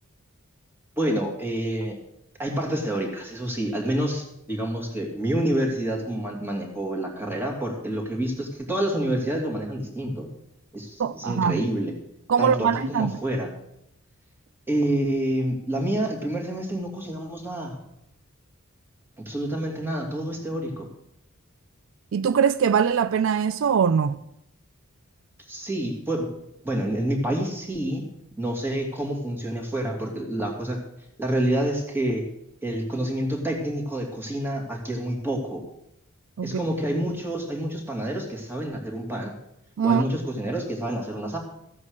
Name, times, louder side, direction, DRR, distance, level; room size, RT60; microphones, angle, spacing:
voice 1, 1.0-2.0 2.4-10.3 10.7-11.9 12.4-13.5 14.7-17.8 19.2-20.9 25.5-26.3 26.6-28.1 28.4-30.8 31.2-32.2 32.6-35.6 36.4-39.3 39.8-41.4, right 1 dB, 10° right, 2.6 m, -28 dB
voice 2, 11.0-11.6 12.3-13.1 22.1-24.2 36.4-36.6 39.8-40.0, right 7 dB, 65° right, 0.4 m, -22 dB
15.0 x 8.5 x 6.6 m
head